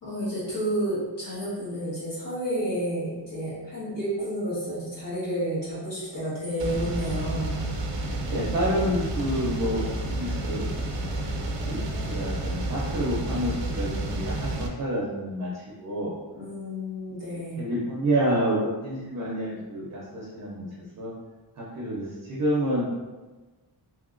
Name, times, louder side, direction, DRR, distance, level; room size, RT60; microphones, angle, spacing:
voice 1, 0.0-7.6 16.3-17.7, right 1 dB, 50° left, -9 dB, 1.4 m, -30 dB
sound 1, 6.6-14.7, right 1 dB, 90° right, 0.6 m, -30 dB
voice 2, 8.3-10.7 11.6-16.2 17.3-20.6 21.0-21.1 21.6-22.9, right 1 dB, 40° right, -5 dB, 0.5 m, -29 dB
2.8 x 2.8 x 2.5 m, 1.2 s
wide cardioid pair, 150°, 42 cm